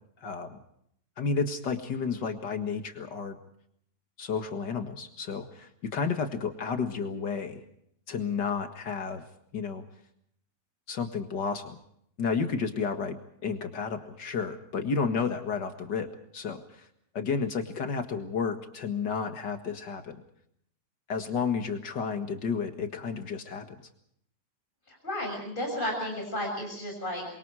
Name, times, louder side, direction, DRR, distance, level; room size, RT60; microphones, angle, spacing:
voice 1, 0.2-0.6 1.2-3.4 4.2-7.6 8.1-9.2 9.5-9.8 10.9-11.8 12.2-16.9 17.1-20.2 21.1-23.8, left 5 dB, 75° left, 6 dB, 2.4 m, -31 dB
voice 2, 24.9-27.3, left 1 dB, 30° left, 1 dB, 7.0 m, -33 dB
28.5 x 23.5 x 4.8 m, 0.71 s
omnidirectional pair, 1.8 m